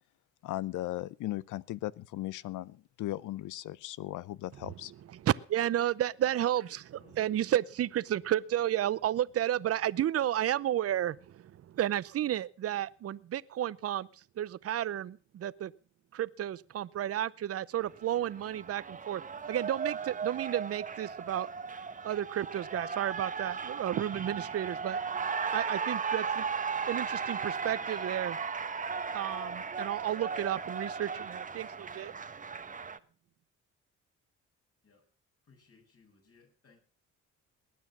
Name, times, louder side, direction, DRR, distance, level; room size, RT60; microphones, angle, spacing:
voice 1, 0.4-4.9, left 15 dB, 80° left, 0.7 m, -37 dB
voice 2, 5.2-11.4 11.7-14.1 14.4-15.7 16.1-19.2 19.5-21.5 22.0-25.0 25.5-26.4 26.9-28.4 29.1-32.1, right 12 dB, 50° right, 0.7 m, -32 dB
Cheering, 17.8-33.0, right 5 dB, 25° right, 1.0 m, -36 dB
voice 3, 27.5-28.0 34.8-35.1 35.4-36.8, left 4 dB, 50° left, 7.8 m, -61 dB
20.0 x 9.5 x 6.1 m
cardioid pair, 90°, 30 cm